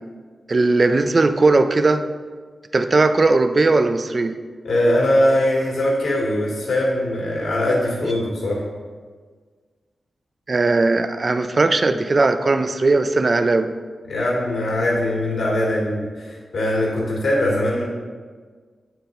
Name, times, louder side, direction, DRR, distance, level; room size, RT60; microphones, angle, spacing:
voice 1, 0.5-2.0 2.7-4.4 10.5-13.7, right 3 dB, 35° right, 8 dB, 0.4 m, -18 dB
voice 2, 4.6-8.6 14.1-17.8, left 1 dB, 70° left, -4 dB, 2.2 m, -21 dB
9.2 x 4.6 x 3.8 m, 1.5 s
wide cardioid pair, 125°, 0 cm